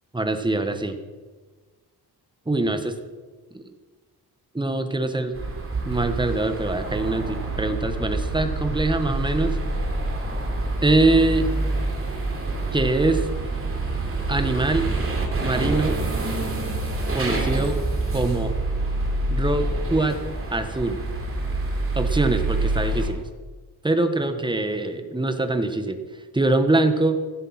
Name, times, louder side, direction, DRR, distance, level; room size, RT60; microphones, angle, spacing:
voice 1, 0.1-1.0 2.5-3.0 3.5-3.6 4.5-5.3 5.8-9.6 10.8-11.5 12.7-13.2 14.3-14.9 15.4-16.0 17.1-17.8 18.1-18.5 19.3-20.2 20.5-21.0 21.9-23.2 23.8-26.0 26.3-27.2, right 2 dB, 10° right, 7 dB, 1.3 m, -23 dB
sound 1, 5.3-23.1, right 2 dB, 35° right, 3.3 m, -26 dB
16.0 x 14.0 x 5.8 m, 1.4 s
wide cardioid pair, 155°, 39 cm